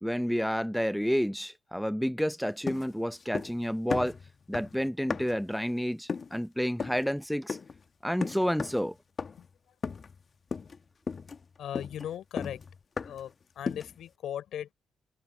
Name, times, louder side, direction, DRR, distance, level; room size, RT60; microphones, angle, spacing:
voice 1, 0.0-4.2 4.5-7.6 8.0-8.9, equal, ahead, 0.6 m, -30 dB
sound 1, 2.7-3.6 3.9-5.5 6.1-6.4 6.8-7.1 7.5-7.8 8.2-8.9 9.2-9.5 9.8-10.2 10.5-10.8 11.1-13.3 13.7-14.0, left 5 dB, 40° left, 1.1 m, -36 dB
voice 2, 9.4-9.8 11.6-12.6 13.0-14.7, left 10 dB, 70° left, 3.6 m, -38 dB
cardioid pair, 90°, 0 cm